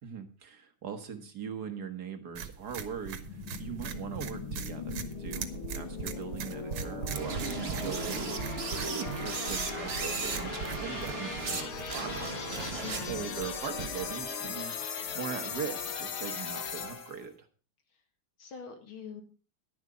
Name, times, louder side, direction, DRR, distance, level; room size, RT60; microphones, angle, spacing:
voice 1, 0.0-12.4 13.1-17.3, right 7 dB, 55° right, 7 dB, 1.6 m, -41 dB
sound 1, 2.3-14.3, right 7 dB, 80° right, 1.9 m, -41 dB
sound 2, 3.2-17.2, left 6 dB, 90° left, 2.2 m, -39 dB
sound 3, 7.1-11.6 11.9-13.3, right 4 dB, 35° right, 1.4 m, -36 dB
voice 2, 12.8-13.4 18.4-19.2, left 6 dB, 75° left, 5 dB, 2.7 m, -44 dB
10.5 x 10.5 x 4.8 m, 0.36 s
omnidirectional pair, 2.3 m